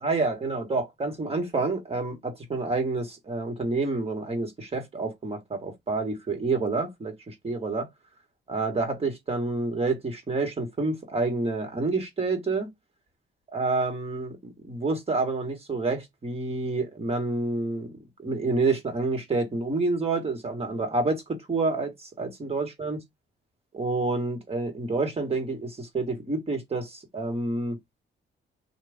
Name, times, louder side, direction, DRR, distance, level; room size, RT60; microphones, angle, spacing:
voice 1, 0.0-7.9 8.5-12.7 13.5-17.9 18.2-23.0 23.7-27.8, right 3 dB, 30° right, 1.5 m, -28 dB
3.0 x 2.4 x 3.5 m
cardioid pair, 90°, 20 cm